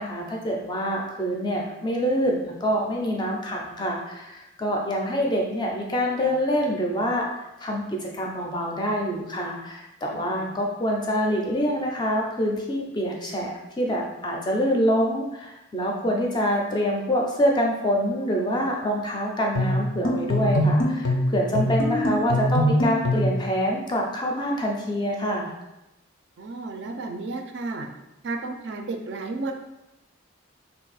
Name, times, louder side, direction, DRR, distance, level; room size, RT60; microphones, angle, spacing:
voice 1, 0.0-7.3 7.6-25.5, equal, 20° left, 0 dB, 0.4 m, -26 dB
voice 2, 10.1-10.5 26.4-27.9 28.2-29.5, right 3 dB, 60° right, 4 dB, 0.3 m, -33 dB
sound 1, 19.6-23.4, left 1 dB, 80° left, 0.5 m, -23 dB
2.6 x 2.3 x 4.0 m, 0.95 s
head